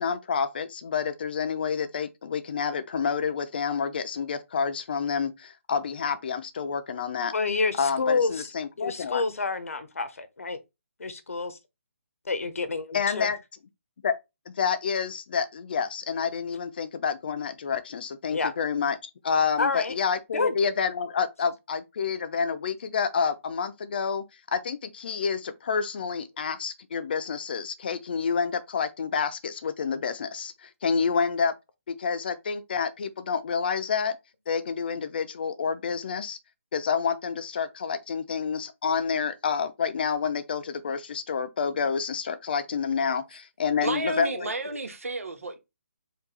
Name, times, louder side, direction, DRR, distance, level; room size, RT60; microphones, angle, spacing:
voice 1, 0.0-7.3 7.8-9.2 12.9-13.4 14.0-14.1 14.5-31.5 31.9-34.2 34.5-36.4 36.7-44.8, left 6 dB, 45° left, 0.6 m, -28 dB
voice 2, 7.3-8.5 8.8-10.6 11.0-11.6 12.2-13.3 18.3-18.5 19.6-19.9 20.3-20.6, left 4 dB, 80° left, 0.9 m, -28 dB
voice 3, 43.8-45.6, right 2 dB, 80° right, 1.4 m, -31 dB
4.7 x 2.6 x 3.9 m
hypercardioid pair, 160°, 8 cm